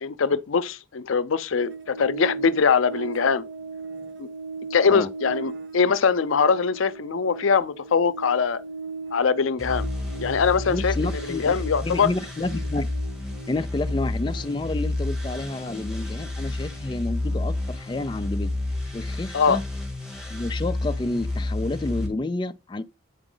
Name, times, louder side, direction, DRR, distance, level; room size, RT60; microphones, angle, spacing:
voice 1, 0.0-3.4 4.2-4.3 4.7-8.6 9.1-9.9 10.2-10.9 11.3-12.1 19.3-19.6, left 5 dB, 85° left, 0.6 m, -22 dB
sound 1, 1.6-18.1 18.4-18.6, right 4 dB, 60° right, 0.7 m, -39 dB
sound 2, 9.6-22.1, left 2 dB, 5° right, 2.1 m, -30 dB
voice 2, 10.7-11.5 11.8-12.9 13.5-18.5 18.9-19.6 20.3-22.8, left 2 dB, 25° left, 0.4 m, -29 dB
8.9 x 4.9 x 3.8 m
head